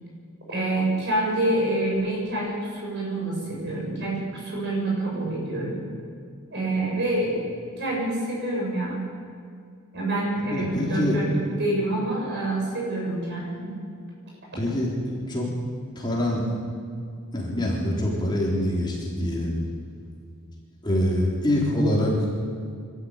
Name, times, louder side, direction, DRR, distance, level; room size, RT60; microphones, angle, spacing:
voice 1, 0.5-5.8 6.5-9.0 9.9-11.3 11.6-13.8, right 1 dB, 50° right, -3 dB, 7.9 m, -27 dB
voice 2, 10.5-11.2 14.6-14.9 15.3-15.5 16.0-16.4 17.3-19.5 20.8-22.1, left 1 dB, 20° left, -4 dB, 3.9 m, -24 dB
25.0 x 13.0 x 9.0 m, 2.3 s
head